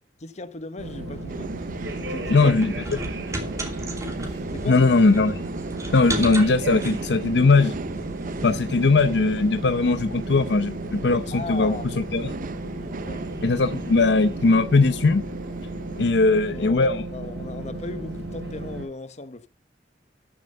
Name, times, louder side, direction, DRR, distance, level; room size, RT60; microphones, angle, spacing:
voice 1, 0.2-1.5 2.0-2.5 4.5-4.9 11.3-12.0 13.0-13.3 16.3-19.5, left 2 dB, 40° left, 1.1 m, -37 dB
sound 1, 0.8-18.8, right 1 dB, 70° right, 6.6 m, -35 dB
sound 2, 1.1-14.6, right 1 dB, 20° right, 2.9 m, -38 dB
sound 3, 1.3-16.1, right 3 dB, 50° right, 0.5 m, -37 dB
voice 2, 2.3-2.7 4.7-5.4 5.9-7.8 8.4-12.4 13.4-15.2 16.0-17.0, left 3 dB, 70° left, 0.7 m, -20 dB
13.0 x 7.3 x 5.4 m
head